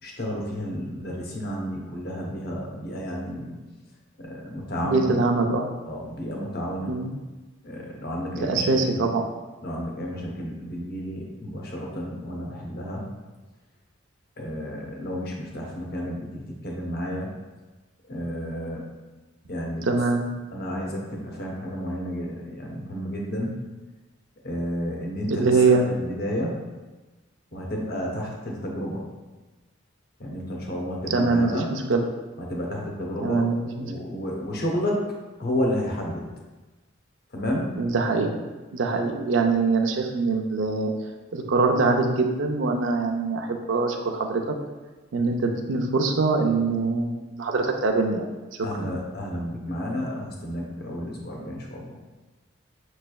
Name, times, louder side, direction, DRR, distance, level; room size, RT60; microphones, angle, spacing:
voice 1, 0.0-3.6 4.2-5.2 5.9-6.9 7.6-9.1 9.6-13.1 14.4-17.3 18.1-18.9 19.5-20.0 20.5-23.6 24.4-26.6 27.5-29.1 30.2-31.7 32.4-33.5 33.8-35.0 35.4-36.3 37.3-37.7 48.6-51.9, equal, 50° left, -1 dB, 0.8 m, -31 dB
voice 2, 4.8-5.7 6.8-7.1 8.4-9.2 19.8-20.2 25.3-25.8 31.1-32.0 33.2-33.9 37.8-38.4 38.7-40.9 41.3-44.5 45.1-48.3 48.8-48.9, right 3 dB, 70° right, 3 dB, 0.5 m, -23 dB
6.5 x 3.2 x 2.3 m, 1.2 s
head